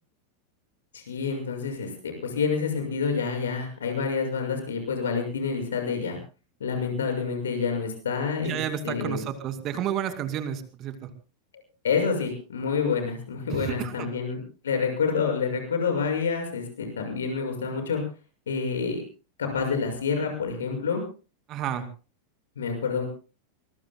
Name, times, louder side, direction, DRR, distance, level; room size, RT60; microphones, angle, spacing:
voice 1, 0.9-6.2 6.6-8.6 8.8-9.2 11.8-18.0 18.5-19.0 19.4-21.0 22.6-23.0, left 5 dB, 65° left, 4 dB, 6.3 m, -28 dB
voice 2, 8.4-11.1 13.5-14.1 21.5-21.9, right 9 dB, 35° right, 9 dB, 2.4 m, -31 dB
24.5 x 22.0 x 2.2 m, 0.34 s
figure-of-eight pair, 90°, 0 cm